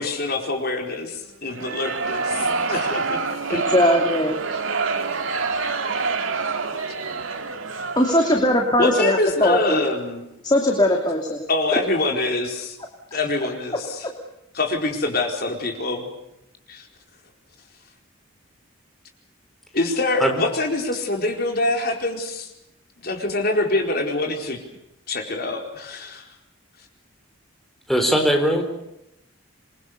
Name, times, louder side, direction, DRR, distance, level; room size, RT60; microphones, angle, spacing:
voice 1, 0.0-3.6 8.8-10.3 11.5-12.8 13.1-14.1 14.5-16.1 16.7-16.9 19.7-22.5 23.0-24.6 25.1-26.3, left 2 dB, 45° left, 3 dB, 4.4 m, -25 dB
sound 1, 1.5-8.7, right 4 dB, 70° right, 2.3 m, -26 dB
voice 2, 3.5-4.4 8.0-9.8 10.4-11.5, left 1 dB, 20° left, 2 dB, 2.6 m, -20 dB
voice 3, 27.9-28.6, equal, ahead, 2 dB, 4.2 m, -19 dB
28.0 x 23.0 x 6.8 m, 0.84 s
head